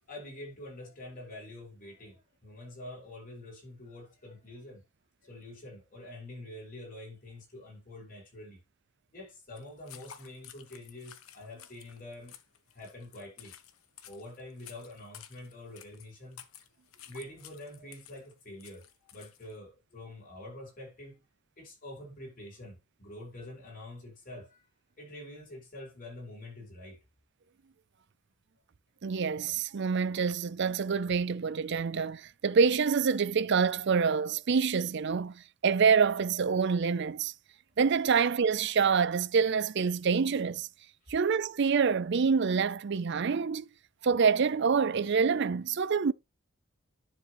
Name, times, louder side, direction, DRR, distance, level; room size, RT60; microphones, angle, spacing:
voice 1, 0.1-4.8 5.2-8.6 9.1-12.4 12.7-13.6 14.1-16.4 17.1-21.2 21.6-24.6 25.0-27.0 41.0-41.1, left 1 dB, 40° left, 5.6 m, -46 dB
sound 1, 9.6-19.6, left 10 dB, 85° left, 1.2 m, -53 dB
voice 2, 29.0-37.3 37.8-40.7 41.1-43.6 44.0-46.1, right 5 dB, 55° right, 0.5 m, -26 dB
10.5 x 6.5 x 3.1 m
head